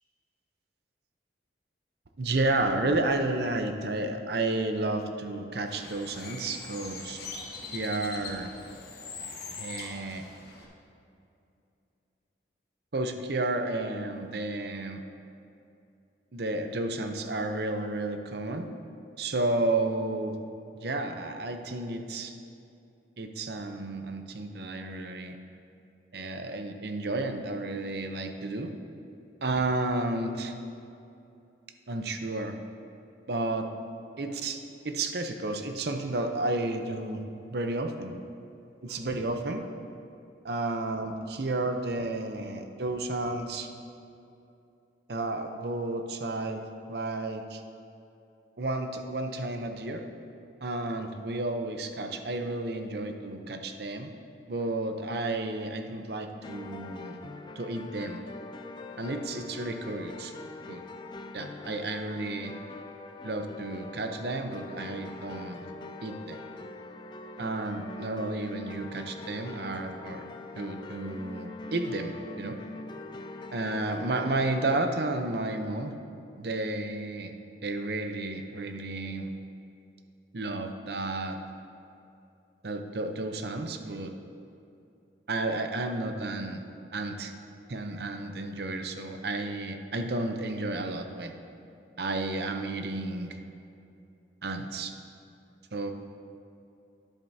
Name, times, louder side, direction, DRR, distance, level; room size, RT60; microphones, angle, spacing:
voice 1, 2.2-7.2 7.7-8.5 9.5-10.3 12.9-15.0 16.3-18.7 19.2-20.4 20.8-22.3 23.2-25.4 26.1-28.7 29.4-30.5 31.9-32.6 33.3-33.7 34.2-34.6 34.8-37.2 37.5-38.1 38.8-39.6 40.4-43.7 45.1-47.6 48.6-50.1 50.6-54.1 54.5-57.2 57.6-58.2 59.0-60.3 60.7-60.8 61.3-62.5 63.2-65.6 66.0-66.4 67.4-70.3 70.6-72.6 73.5-75.9 76.4-77.3 77.6-79.3 80.3-81.4 82.6-84.1 85.3-86.6 86.9-87.3 87.7-91.3 92.0-93.4 94.4-94.9 95.7-95.9, right 2 dB, 60° right, 6 dB, 0.7 m, -32 dB
Bird, 5.7-10.7, left 4 dB, 55° left, 1.4 m, -42 dB
sound 1, 56.4-74.8, left 2 dB, 25° left, 0.4 m, -43 dB
12.5 x 10.5 x 2.7 m, 2.7 s
head